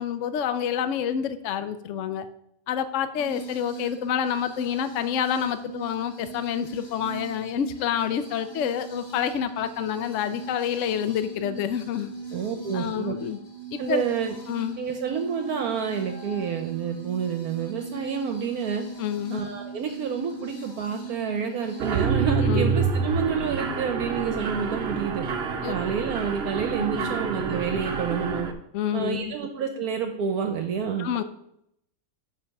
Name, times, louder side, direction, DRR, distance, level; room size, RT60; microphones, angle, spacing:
voice 1, 0.0-2.3 2.7-12.1 12.7-13.4 13.7-14.0 14.5-14.8 19.0-19.4 22.4-22.8 25.6-25.8 26.8-27.2 28.7-29.3 31.0-31.2, left 9 dB, 70° left, 10 dB, 0.7 m, -28 dB
sound 1, 3.2-22.1, right 4 dB, 40° left, 2.0 m, -40 dB
voice 2, 12.3-13.1 13.8-14.3 14.8-18.8 19.3-25.2 25.7-28.5 28.9-31.1, right 6 dB, 65° right, 5 dB, 1.2 m, -29 dB
Mechanisms, 21.8-28.5, right 5 dB, 50° right, 0.8 m, -27 dB
9.8 x 3.3 x 7.0 m, 0.76 s
omnidirectional pair, 1.8 m